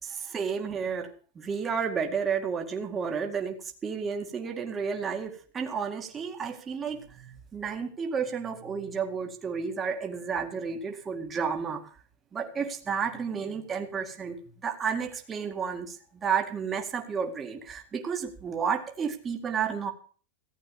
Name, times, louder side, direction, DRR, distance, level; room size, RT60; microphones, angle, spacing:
voice 1, 0.0-1.1 1.4-11.9 12.3-19.9, right 6 dB, 20° right, 3 dB, 2.1 m, -32 dB
15.5 x 8.6 x 7.0 m, 0.41 s
supercardioid pair, 145°, 0 cm